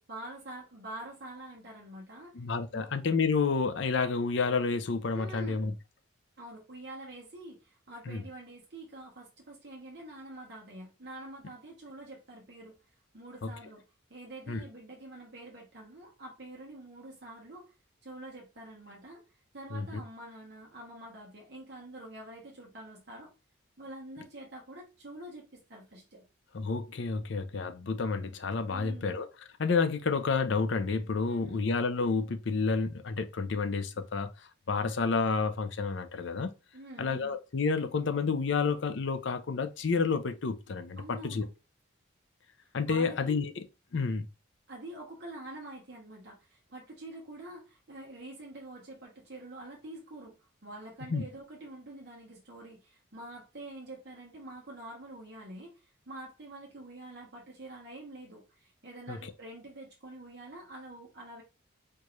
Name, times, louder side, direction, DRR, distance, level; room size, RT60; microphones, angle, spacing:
voice 1, 0.0-2.4 2.7-2.9 5.1-5.8 6.4-12.8 13.1-13.8 14.1-17.7 18.0-19.2 19.5-23.3 23.8-26.2 28.7-29.2 31.3-31.6 36.7-37.4 41.0-41.5 42.9-43.4 44.7-61.4, right 1 dB, 50° right, 1.0 m, -46 dB
voice 2, 2.3-5.7 8.1-8.2 13.4-13.5 14.5-14.6 19.7-19.9 26.5-29.3 29.6-36.5 37.0-41.4 42.7-43.6 43.9-44.3 51.1-51.2 59.1-59.2, left 4 dB, 60° left, 0.5 m, -30 dB
4.5 x 2.5 x 3.0 m
head